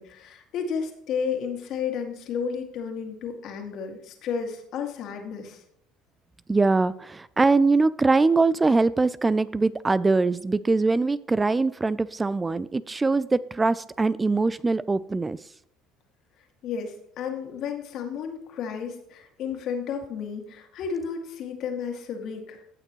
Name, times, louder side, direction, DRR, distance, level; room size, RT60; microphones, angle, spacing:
voice 1, 0.0-5.6 16.6-22.6, left 6 dB, 60° left, 3 dB, 2.1 m, -32 dB
voice 2, 6.5-15.4, right 3 dB, 20° right, 18 dB, 0.4 m, -22 dB
16.0 x 6.5 x 3.1 m, 0.74 s
hypercardioid pair, 75°, 0 cm